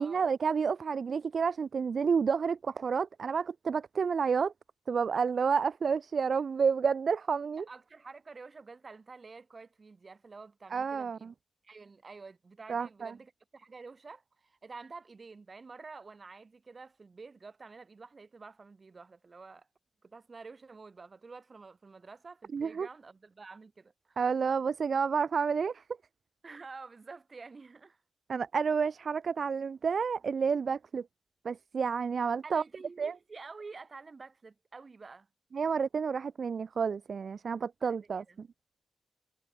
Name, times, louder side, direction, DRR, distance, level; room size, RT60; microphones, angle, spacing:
voice 1, 0.0-4.5 4.9-7.7 10.7-11.3 12.7-13.1 22.5-22.9 24.2-25.8 28.3-31.1 31.4-32.6 33.0-33.1 35.5-38.5, right 6 dB, 70° right, 0.5 m, -30 dB
voice 2, 7.6-11.3 11.6-19.7 20.0-24.2 26.4-28.0 32.4-35.3 38.3-38.4, right 4 dB, 50° right, 5.4 m, -49 dB
cardioid pair, 50°, 0 cm